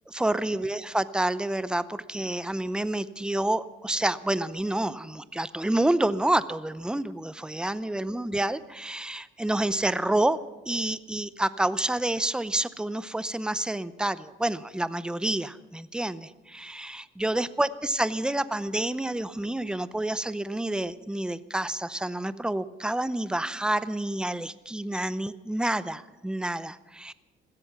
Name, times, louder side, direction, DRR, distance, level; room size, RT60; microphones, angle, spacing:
voice 1, 0.1-10.4 10.7-27.1, right 1 dB, 5° right, 15 dB, 0.6 m, -28 dB
16.0 x 13.5 x 6.0 m, 1.1 s
cardioid pair, 90°, 20 cm